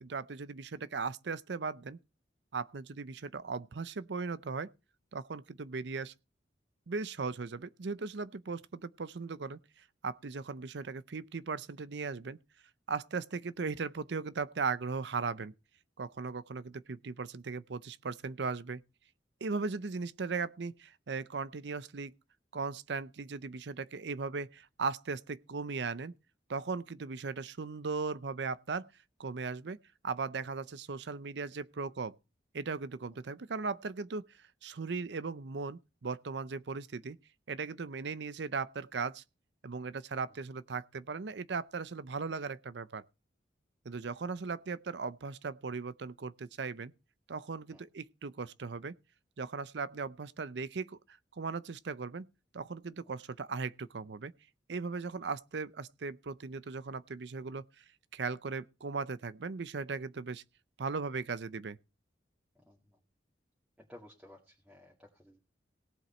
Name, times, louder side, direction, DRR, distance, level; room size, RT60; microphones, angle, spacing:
voice 1, 0.0-2.0 2.5-4.7 5.1-6.1 6.9-9.6 10.0-12.4 12.9-15.5 16.0-18.8 19.4-22.1 22.5-26.1 26.5-28.9 29.2-29.8 30.0-32.1 32.5-34.3 34.6-37.2 37.5-39.2 39.6-43.0 43.8-46.9 47.3-48.9 49.4-52.3 52.5-54.3 54.7-57.6 58.1-60.4 60.8-61.8, right 4 dB, 75° right, 0.6 m, -38 dB
voice 2, 62.5-63.0 63.8-65.4, left 1 dB, 5° right, 2.2 m, -56 dB
17.5 x 7.9 x 4.4 m
head